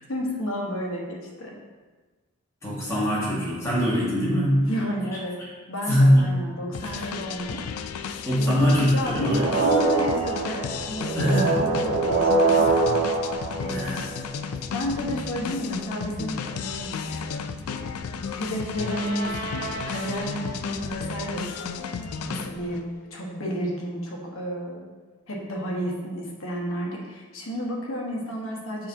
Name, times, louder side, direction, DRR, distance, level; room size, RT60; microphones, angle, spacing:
voice 1, 0.1-1.5 4.6-5.4 5.7-7.6 8.3-12.4 13.6-14.1 14.7-16.9 18.3-24.8 25.3-28.9, equal, 65° left, -2 dB, 1.3 m, -32 dB
voice 2, 2.6-4.6 5.9-6.2 6.8-6.9 8.3-9.4 11.2-11.7 13.7-14.0, equal, 15° left, -7 dB, 1.8 m, -22 dB
sound 1, 6.7-22.8, left 6 dB, 85° left, 0.4 m, -34 dB
sound 2, 9.1-14.4 18.7-20.4, right 3 dB, 85° right, 1.4 m, -25 dB
6.8 x 5.7 x 2.8 m, 1.3 s
head